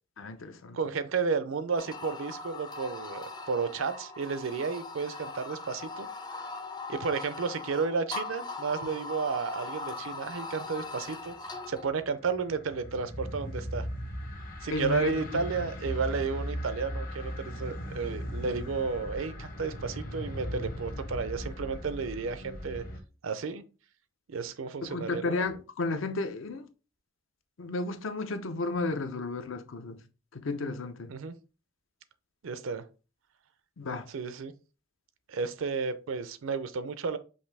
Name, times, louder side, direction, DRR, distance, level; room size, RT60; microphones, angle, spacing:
voice 1, 0.2-0.8 14.7-15.4 24.8-26.6 27.6-30.0 30.3-31.1 33.8-34.0, left 3 dB, 75° left, 0.6 m, -33 dB
voice 2, 0.7-6.1 6.9-11.3 11.7-13.9 14.6-22.8 23.2-23.6 24.3-25.3 31.1-31.3 32.4-32.8 34.1-34.5 35.3-37.2, right 5 dB, 75° right, 0.5 m, -32 dB
sound 1, 1.8-11.9, left 3 dB, 20° left, 0.4 m, -40 dB
sound 2, 11.3-23.0, equal, 45° left, 0.9 m, -38 dB
5.5 x 2.6 x 3.3 m
head